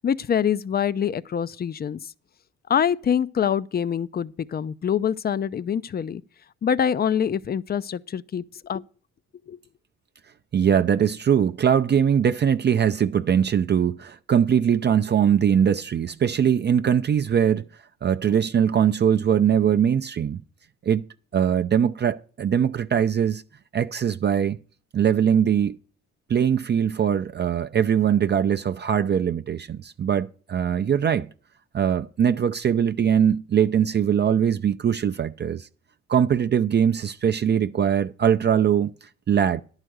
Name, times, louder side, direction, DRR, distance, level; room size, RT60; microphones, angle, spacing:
voice 1, 0.0-2.1 2.7-6.2 6.6-8.8 9.5-9.6, left 8 dB, 35° left, 0.5 m, -25 dB
voice 2, 10.5-17.6 18.0-20.4 20.8-21.1 21.3-23.4 23.7-24.6 24.9-25.8 26.3-31.3 31.7-35.7 36.1-39.6, right 8 dB, 35° right, 0.5 m, -21 dB
11.0 x 4.9 x 7.9 m
cardioid pair, 90°, 30 cm